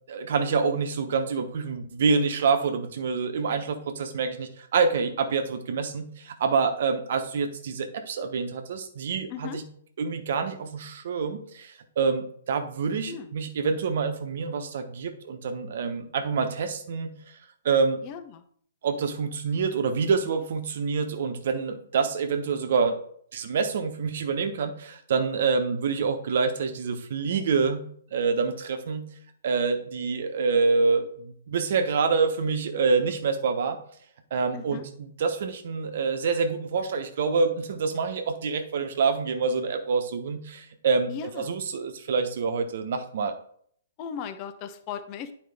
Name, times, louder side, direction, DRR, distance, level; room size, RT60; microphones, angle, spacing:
voice 1, 0.1-9.6 10.0-17.1 17.6-18.0 18.8-23.0 23.3-27.8 28.1-29.1 29.4-33.8 34.3-34.8 35.2-41.1 41.4-43.3, right 5 dB, 60° right, 7 dB, 1.1 m, -26 dB
voice 2, 9.3-9.6 13.1-13.3 18.0-18.4 34.5-34.8 41.1-41.6 44.0-45.3, left 8 dB, 35° left, 9 dB, 0.8 m, -37 dB
9.5 x 4.8 x 3.6 m, 0.64 s
hypercardioid pair, 125°, 0 cm